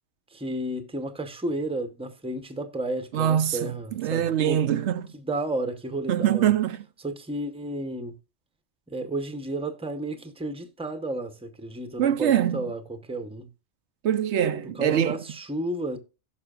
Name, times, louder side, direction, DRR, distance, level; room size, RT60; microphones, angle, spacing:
voice 1, 0.3-4.6 5.1-6.5 7.0-8.1 8.9-13.5 14.7-16.0, right 1 dB, 5° right, 0.8 m, -32 dB
voice 2, 3.1-3.6 4.0-5.1 6.1-6.8 12.0-12.7 14.0-15.2, right 10 dB, 75° right, 0.9 m, -23 dB
16.5 x 5.8 x 2.4 m
omnidirectional pair, 1.2 m